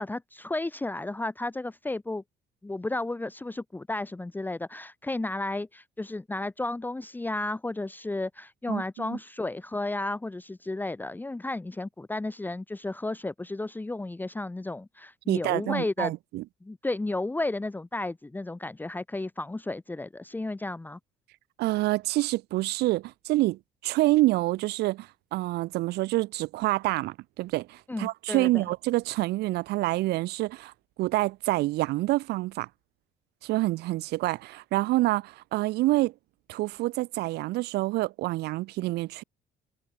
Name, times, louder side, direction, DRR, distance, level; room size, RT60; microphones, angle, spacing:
voice 1, 0.0-2.2 2.6-16.1 16.6-21.0 27.9-28.6, left 2 dB, 10° left, 1.2 m, -33 dB
voice 2, 8.7-9.2 15.3-16.4 21.6-30.7 31.0-32.7 33.4-36.1 36.5-39.2, right 18 dB, 75° right, 0.5 m, -27 dB
cardioid pair, 110°, 17 cm